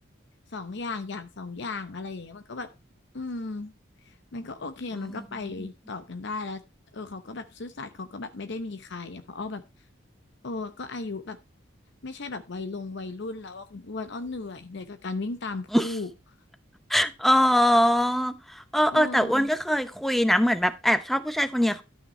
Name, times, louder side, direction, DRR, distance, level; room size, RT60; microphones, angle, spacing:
voice 1, 0.5-2.7 3.1-3.7 4.0-6.6 6.9-9.6 10.4-11.4 12.0-16.1 18.9-19.5, left 3 dB, 60° left, 0.8 m, -36 dB
voice 2, 16.9-21.8, equal, ahead, 0.7 m, -22 dB
12.5 x 5.9 x 4.2 m
head